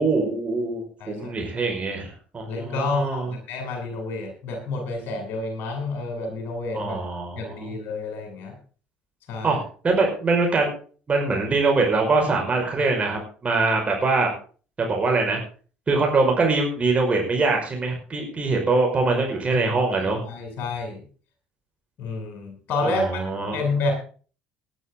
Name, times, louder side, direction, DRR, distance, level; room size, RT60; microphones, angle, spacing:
voice 1, 0.0-3.3 6.7-7.7 9.4-10.7 11.1-14.3 14.8-15.4 15.9-20.2 22.8-23.6, right 3 dB, 25° right, 1 dB, 5.4 m, -23 dB
voice 2, 1.0-1.3 2.5-7.0 7.4-8.6 9.3-9.6 19.5-19.7 20.3-21.0 22.0-23.2 23.5-23.9, left 3 dB, 50° left, 3 dB, 7.9 m, -29 dB
19.0 x 11.0 x 3.9 m, 0.40 s
figure-of-eight pair, 55°, 5 cm